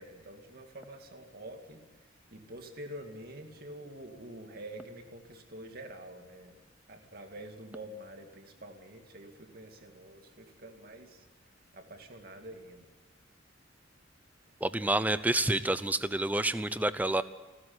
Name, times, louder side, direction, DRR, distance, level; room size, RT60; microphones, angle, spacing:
voice 1, 0.0-1.8 2.3-6.6 6.9-11.3 11.7-12.9, right 1 dB, 50° right, 4 dB, 2.4 m, -47 dB
voice 2, 14.6-17.2, right 1 dB, 10° right, 13 dB, 0.7 m, -28 dB
29.5 x 13.0 x 9.7 m, 1.3 s
head